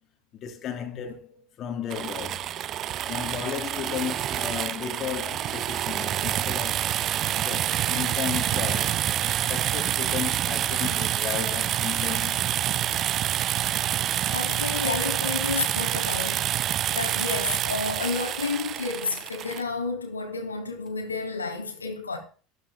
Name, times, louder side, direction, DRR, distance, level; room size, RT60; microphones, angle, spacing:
voice 1, 0.4-2.6 3.1-9.0 9.4-12.5 14.1-14.4, left 8 dB, 40° left, 3.0 m, -34 dB
sound 1, 1.9-19.6, right 12 dB, 40° right, 0.6 m, -27 dB
voice 2, 14.3-16.5 16.9-22.2, left 4 dB, 85° left, 2.8 m, -31 dB
13.0 x 12.5 x 3.6 m
figure-of-eight pair, 70°, 0 cm